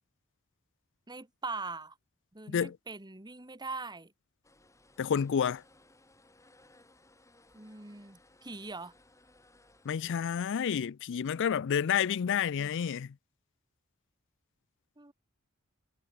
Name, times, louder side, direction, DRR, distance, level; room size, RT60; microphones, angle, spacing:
voice 1, 1.1-1.9 2.3-4.1 7.5-8.9 12.6-12.8 15.0-15.1, right 3 dB, 20° right, 1.8 m, -42 dB
sound 1, 4.4-10.4, left 2 dB, 15° left, 3.5 m, -62 dB
voice 2, 5.0-5.6 9.9-13.1, left 7 dB, 60° left, 0.4 m, -29 dB
head